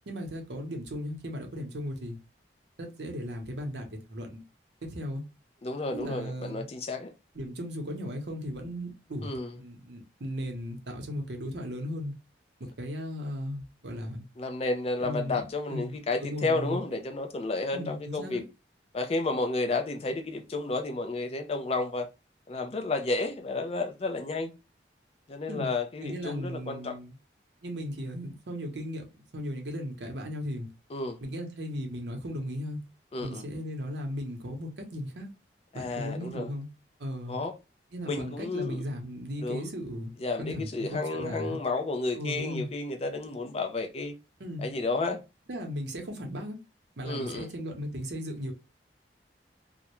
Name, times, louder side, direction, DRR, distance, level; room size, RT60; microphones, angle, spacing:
voice 1, 0.1-2.2 2.8-4.4 4.8-5.2 5.9-6.6 7.3-12.1 12.6-14.2 15.0-16.8 17.7-18.5 25.5-25.7 26.0-27.1 27.6-30.7 31.2-32.8 33.2-35.3 35.7-36.7 37.0-37.4 37.9-41.6 42.1-42.7 44.4-44.7 45.5-46.6 47.0-48.5, equal, 75° right, 0.7 m, -36 dB
voice 2, 5.6-7.1 9.2-9.5 14.4-18.4 18.9-22.1 22.5-24.5 25.3-27.0 30.9-31.2 33.1-33.4 35.7-36.5 37.3-37.5 38.1-38.8 39.4-39.7 40.2-44.1 44.6-45.2 47.1-47.5, left 3 dB, 35° left, 0.4 m, -31 dB
2.4 x 2.1 x 2.9 m
head